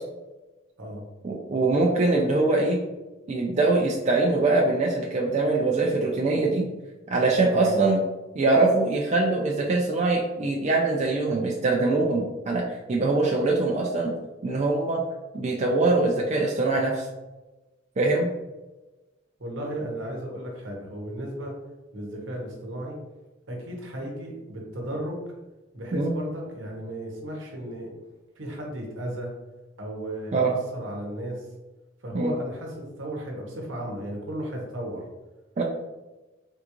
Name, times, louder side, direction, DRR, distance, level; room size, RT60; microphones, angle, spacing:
voice 1, 1.2-2.8 3.3-6.6 7.1-8.0 8.4-12.6 12.9-14.1 14.4-15.0 15.3-17.1 18.0-18.3 25.9-26.1 30.3-30.5 32.1-32.3 35.6-35.7, right 3 dB, 35° right, -2 dB, 0.3 m, -23 dB
voice 2, 19.4-21.5 21.9-23.0 23.5-25.2 25.7-27.9 28.4-29.3 29.8-31.5 32.0-35.0, right 1 dB, 70° right, 0 dB, 0.9 m, -35 dB
3.6 x 2.4 x 2.9 m, 1.1 s
head